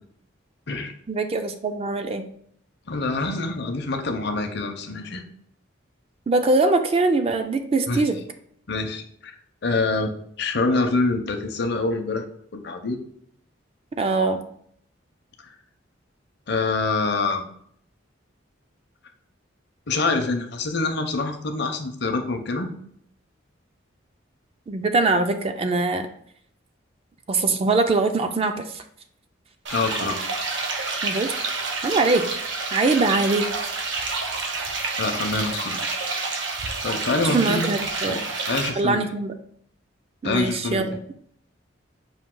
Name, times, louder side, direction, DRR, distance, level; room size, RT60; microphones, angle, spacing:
voice 1, 1.1-2.3 6.3-8.2 14.0-14.5 24.7-26.1 27.3-28.8 31.0-31.6 31.8-33.5 37.2-38.2 38.8-39.3 40.2-41.0, right 3 dB, 30° right, 7 dB, 0.3 m, -22 dB
voice 2, 2.9-5.2 7.9-8.0 8.7-9.3 9.6-10.1 10.4-12.2 12.5-13.0 16.5-17.5 19.9-22.7 29.7-30.2 35.0-35.8 36.8-37.6 38.0-39.0 40.2-41.0, left 3 dB, 60° left, 5 dB, 0.6 m, -25 dB
sound 1, 29.7-38.7, right 3 dB, 65° right, 0.8 m, -28 dB
5.0 x 2.7 x 3.7 m, 0.65 s
head